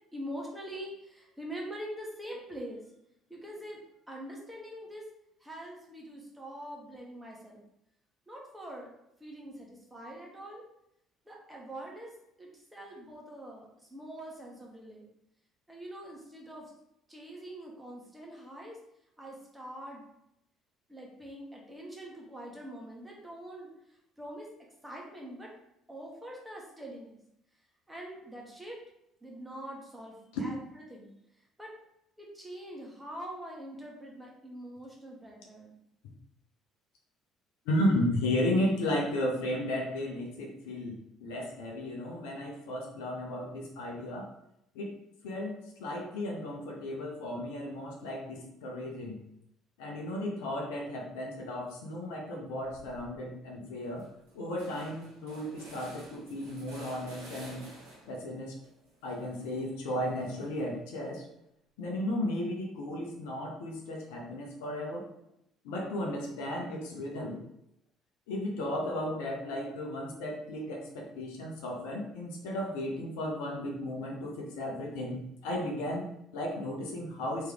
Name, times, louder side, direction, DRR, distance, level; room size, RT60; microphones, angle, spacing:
voice 1, 0.1-2.8 3.3-3.8 4.1-5.0 5.4-7.6 8.3-8.9 9.2-10.6 11.3-12.1 12.4-15.1 15.7-16.7 17.1-18.8 19.2-20.0 20.9-23.7 24.2-24.5 24.8-25.5 25.9-27.2 27.9-28.8 29.2-30.2 30.4-30.6 30.9-31.1 31.6-31.7 32.2-35.8, equal, 10° right, -2 dB, 1.2 m, -44 dB
voice 2, 37.7-44.3 44.7-44.9 45.2-49.2 49.8-54.1 54.3-57.6 58.1-58.6 59.0-61.3 61.8-65.1 65.6-67.4 68.3-77.5, left 1 dB, 70° left, 0 dB, 0.7 m, -34 dB
sound 1, 52.6-53.1 53.5-53.6 53.8-58.3 58.6-60.8, right 1 dB, 70° right, 1.2 m, -52 dB
3.2 x 3.0 x 3.5 m, 0.79 s
figure-of-eight pair, 55°, 0 cm